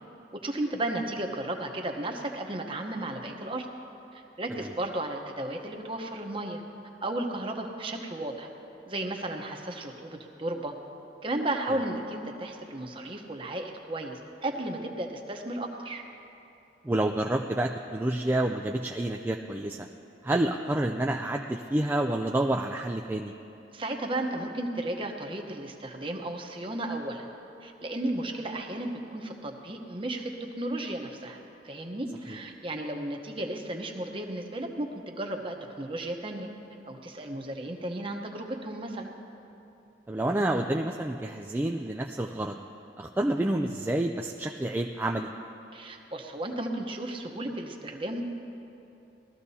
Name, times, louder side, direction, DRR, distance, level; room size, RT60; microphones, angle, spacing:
voice 1, 0.4-3.7 4.1-6.6 7.0-8.5 8.9-10.7 11.2-16.0 23.7-27.3 27.6-30.3 30.6-36.5 36.9-39.1 45.7-48.2, right 1 dB, 30° right, 3 dB, 1.0 m, -34 dB
voice 2, 16.8-19.9 20.2-23.3 32.3-32.4 40.1-42.6 43.0-45.3, right 1 dB, 10° right, 2 dB, 0.3 m, -28 dB
19.5 x 13.5 x 2.8 m, 2.9 s
head